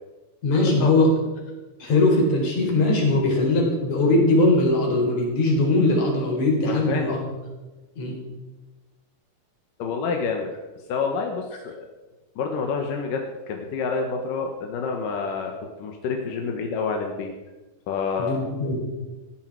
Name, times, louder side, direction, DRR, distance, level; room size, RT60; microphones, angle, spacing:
voice 1, 0.4-1.1 1.8-7.3 8.0-8.2 18.2-18.8, left 2 dB, 55° left, 0 dB, 5.1 m, -20 dB
voice 2, 6.7-7.2 9.8-10.5 10.9-11.9 12.4-15.5 15.8-17.3 17.9-18.4, left 5 dB, 90° left, 2 dB, 3.0 m, -28 dB
18.0 x 14.5 x 4.8 m, 1.2 s
omnidirectional pair, 3.7 m